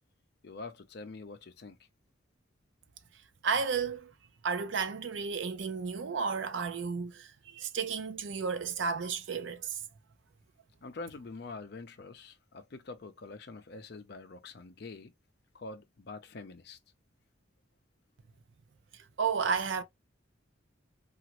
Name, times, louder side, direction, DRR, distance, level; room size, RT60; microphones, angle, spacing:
voice 1, 0.4-1.8 10.8-15.1 15.5-16.8, left 3 dB, 50° left, 0.5 m, -45 dB
voice 2, 3.4-4.1 4.4-9.8 18.9-19.8, right 5 dB, 70° right, 0.5 m, -32 dB
2.9 x 2.4 x 2.9 m
head